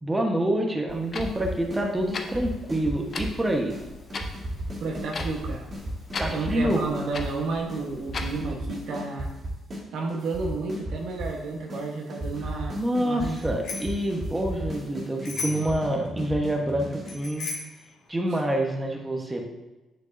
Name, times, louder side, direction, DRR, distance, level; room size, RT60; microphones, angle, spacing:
voice 1, 0.0-3.8 6.2-6.9 12.7-17.5 18.1-19.5, right 1 dB, 15° right, 1 dB, 1.2 m, -27 dB
Clock, 0.9-8.4, left 4 dB, 45° left, 0.8 m, -39 dB
sound 1, 1.2-1.8 2.1-3.4 3.7-3.8 4.1-7.3 7.7-7.8 8.1-9.8 10.1-11.4 11.7-11.8 12.1-17.2, right 1 dB, 40° right, 2.4 m, -35 dB
voice 2, 4.8-5.7 6.3-9.3 9.9-13.4, right 3 dB, 75° right, 0 dB, 1.2 m, -31 dB
Bicycle bell, 13.3-14.0 15.2-15.8 17.1-17.8, left 4 dB, 65° left, 1.8 m, -35 dB
8.2 x 6.4 x 2.7 m, 1.1 s
cardioid pair, 90°, 0 cm